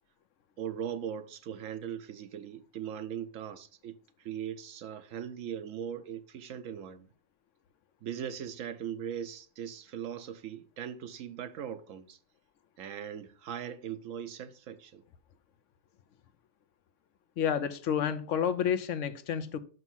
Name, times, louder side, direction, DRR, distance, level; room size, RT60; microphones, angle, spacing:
voice 1, 0.6-7.1 8.0-12.2 12.8-15.0, right 9 dB, 75° right, 1.0 m, -39 dB
voice 2, 17.4-19.6, left 8 dB, 70° left, 1.0 m, -30 dB
6.0 x 5.4 x 5.6 m
omnidirectional pair, 1.4 m